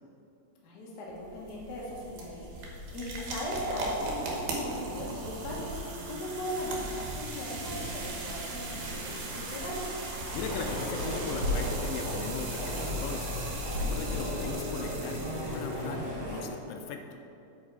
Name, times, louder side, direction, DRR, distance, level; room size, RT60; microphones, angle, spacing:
voice 1, 0.6-9.9 14.4-14.5, left 1 dB, 55° left, -4 dB, 1.1 m, -39 dB
sound 1, 1.1-16.0, right 2 dB, 80° right, 3.0 m, -38 dB
voice 2, 10.3-13.3 13.7-17.0, left 6 dB, 80° left, 5 dB, 2.1 m, -39 dB
sound 2, 10.3-16.4, left 1 dB, 55° right, 2.6 m, -34 dB
8.7 x 5.4 x 4.8 m, 2.8 s
omnidirectional pair, 4.0 m